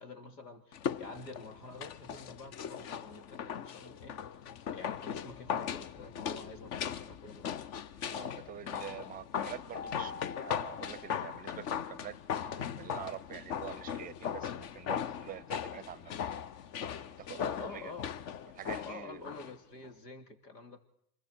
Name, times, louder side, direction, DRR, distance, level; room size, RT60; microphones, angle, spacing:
voice 1, 0.0-4.2 4.6-7.7 17.6-18.1 18.8-20.8, left 3 dB, 85° left, 3.1 m, -48 dB
sound 1, 0.7-19.5 19.8-19.9, left 8 dB, 35° left, 0.8 m, -38 dB
voice 2, 8.0-16.1 16.9-17.9 18.5-19.3, right 11 dB, 20° right, 0.7 m, -46 dB
Keyboard (musical), 9.7-12.3, left 4 dB, 65° left, 3.2 m, -48 dB
26.5 x 21.5 x 4.6 m
hypercardioid pair, 105°, 47 cm